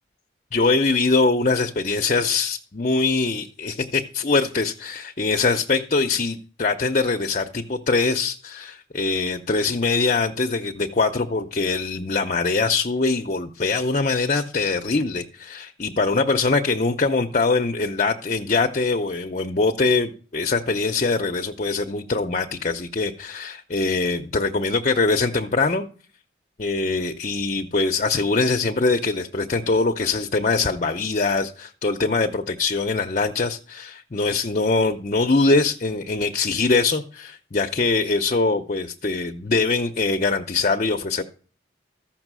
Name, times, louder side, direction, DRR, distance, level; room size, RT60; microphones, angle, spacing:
voice 1, 0.5-25.9 26.6-41.2, left 3 dB, 40° left, 5 dB, 0.7 m, -23 dB
14.0 x 6.0 x 6.1 m, 0.43 s
head